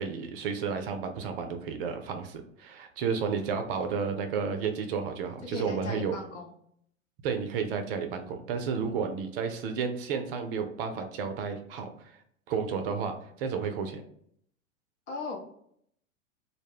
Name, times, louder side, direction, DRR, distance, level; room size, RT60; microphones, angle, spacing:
voice 1, 0.0-6.1 7.2-12.2 12.5-14.0, right 6 dB, 50° right, 6 dB, 0.4 m, -32 dB
voice 2, 5.4-6.5 8.7-9.0 15.1-15.4, left 3 dB, 65° left, 1 dB, 0.8 m, -38 dB
2.1 x 2.1 x 3.3 m, 0.67 s
figure-of-eight pair, 90°, 39 cm